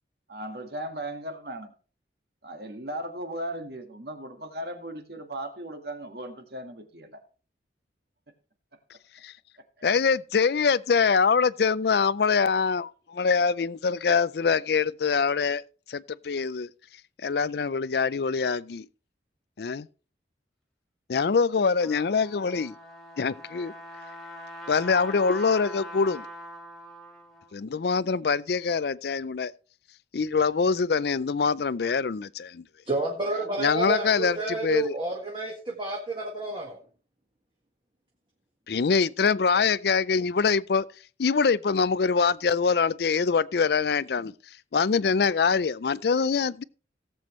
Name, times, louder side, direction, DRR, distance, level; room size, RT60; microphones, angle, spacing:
voice 1, 0.3-1.7 2.4-7.2, right 1 dB, 60° right, 1.9 m, -37 dB
voice 2, 9.8-15.6 15.9-16.7 17.2-18.9 19.6-19.9 21.1-22.7 23.2-23.7 24.7-26.2 27.5-29.5 30.1-32.6 33.6-34.9 38.7-40.9 41.2-44.3 44.7-46.6, left 5 dB, 60° left, 0.4 m, -24 dB
Trumpet, 21.5-27.5, equal, ahead, 2.1 m, -43 dB
voice 3, 32.9-36.8, right 2 dB, 25° right, 1.7 m, -30 dB
17.5 x 7.8 x 3.1 m
head